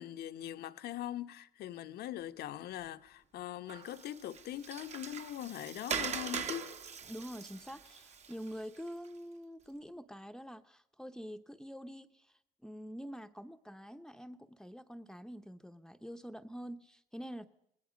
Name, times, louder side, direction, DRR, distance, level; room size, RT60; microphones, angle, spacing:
voice 1, 0.0-6.7, left 12 dB, 70° left, 1.2 m, -42 dB
Water, 3.7-9.1, right 6 dB, 40° right, 1.4 m, -42 dB
voice 2, 7.1-17.5, equal, 5° left, 0.9 m, -46 dB
27.5 x 20.0 x 5.3 m
cardioid pair, 110°, 17 cm